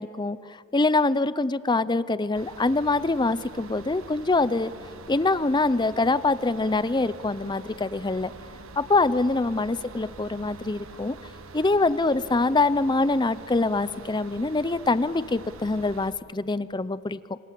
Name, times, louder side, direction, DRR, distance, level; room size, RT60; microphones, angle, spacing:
voice 1, 0.0-4.7 5.1-8.3 8.8-11.2 11.5-17.4, left 3 dB, 20° left, 16 dB, 0.6 m, -24 dB
sound 1, 2.3-16.1, right 3 dB, 75° right, 1.4 m, -45 dB
26.5 x 26.5 x 7.7 m, 2.6 s
head